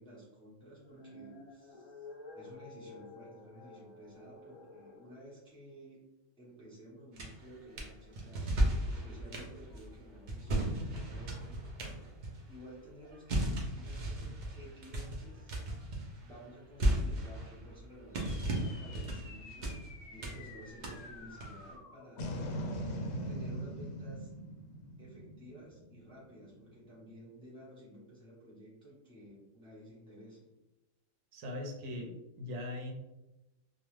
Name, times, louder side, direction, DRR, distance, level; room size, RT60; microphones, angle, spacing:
voice 1, 0.0-2.1 2.3-6.0 6.4-8.5 8.9-11.6 12.5-15.5 16.2-22.4 23.3-24.3 25.0-30.5, equal, 5° left, -7 dB, 0.6 m, -53 dB
sound 1, 0.7-5.1, left 2 dB, 50° left, 0.5 m, -52 dB
sound 2, 7.2-7.9 8.1-12.8 13.0-21.8, right 1 dB, 60° right, 0.5 m, -35 dB
sound 3, 18.1-26.7, equal, 75° left, 1.0 m, -43 dB
voice 2, 31.3-32.9, left 1 dB, 75° right, 1 dB, 1.0 m, -40 dB
2.4 x 2.4 x 3.0 m, 0.98 s
omnidirectional pair, 1.4 m